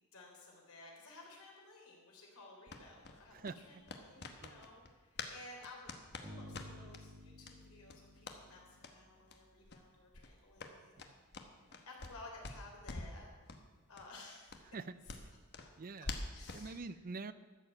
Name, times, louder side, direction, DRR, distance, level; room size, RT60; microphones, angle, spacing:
voice 1, 0.1-5.9 6.2-11.2 11.9-13.3 13.9-14.6 16.3-16.9, left 2 dB, 80° left, 0 dB, 3.5 m, -55 dB
sound 1, 2.7-5.4 5.6-7.0 7.4-7.6 7.8-8.4 8.8-8.9 9.3-9.4 9.6-9.8 10.1-12.2 12.4-13.2 13.5-13.6 13.9-14.0 14.5-16.7, left 3 dB, 50° left, 1.1 m, -46 dB
sound 2, 6.2-9.6, left 1 dB, 20° right, 2.3 m, -54 dB
voice 2, 15.8-16.2 16.5-17.3, right 4 dB, 40° right, 14 dB, 0.5 m, -45 dB
13.0 x 7.1 x 7.9 m, 1.3 s
head